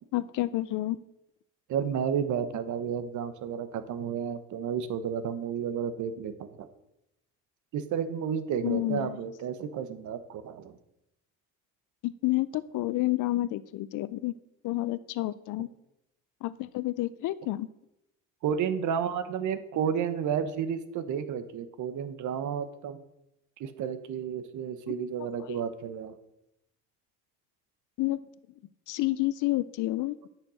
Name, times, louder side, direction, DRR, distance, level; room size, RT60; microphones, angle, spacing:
voice 1, 0.1-1.0 8.6-9.2 12.0-14.3 14.6-15.7 16.4-17.7 24.9-25.0 25.2-25.6 28.0-28.2 28.9-30.2, left 17 dB, 70° left, 16 dB, 0.6 m, -29 dB
voice 2, 1.7-6.7 7.7-10.7 18.4-23.0 23.6-26.1, right 7 dB, 65° right, 12 dB, 1.1 m, -32 dB
11.5 x 6.8 x 6.3 m, 0.86 s
cardioid pair, 130°, 31 cm